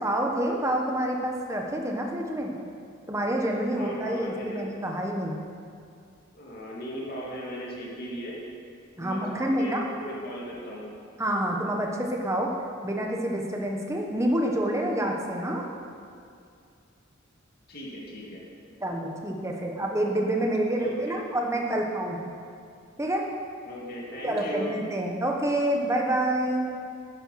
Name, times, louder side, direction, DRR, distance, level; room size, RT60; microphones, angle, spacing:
voice 1, 0.0-2.5 3.1-5.4 9.0-9.8 11.2-12.5 12.8-15.7 18.8-22.3 23.0-23.3 24.2-26.7, right 1 dB, 15° right, 0 dB, 1.2 m, -27 dB
voice 2, 3.7-4.6 6.3-8.4 9.0-10.8 17.7-18.4 20.8-21.1 23.6-24.8, equal, 45° left, -5 dB, 2.6 m, -37 dB
11.0 x 10.0 x 5.8 m, 2.3 s
head